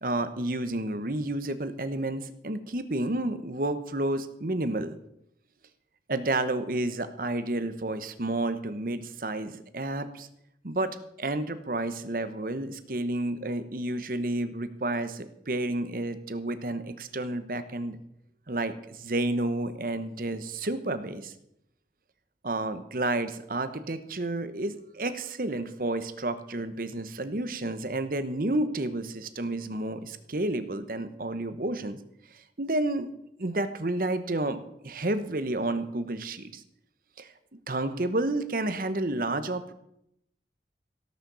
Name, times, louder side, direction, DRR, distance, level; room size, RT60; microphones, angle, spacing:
voice 1, 0.0-5.0 6.1-10.3 10.6-18.0 18.5-21.3 22.4-32.0 32.3-33.1 33.4-36.6 37.2-37.3 37.7-39.7, right 2 dB, 50° right, 11 dB, 1.0 m, -30 dB
17.5 x 6.7 x 6.9 m, 0.77 s
head